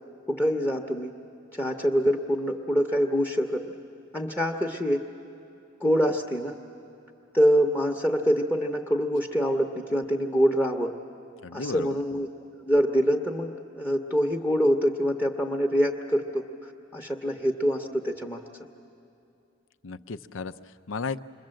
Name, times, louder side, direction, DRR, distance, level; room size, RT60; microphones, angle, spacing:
voice 1, 0.3-1.1 1.5-3.8 4.1-5.0 5.8-6.5 7.3-10.9 11.5-12.3 12.6-16.5 16.9-18.4, equal, 10° left, 4 dB, 0.8 m, -25 dB
voice 2, 11.4-12.0 19.8-21.2, left 4 dB, 80° left, 11 dB, 0.6 m, -34 dB
27.5 x 22.0 x 7.6 m, 2.6 s
head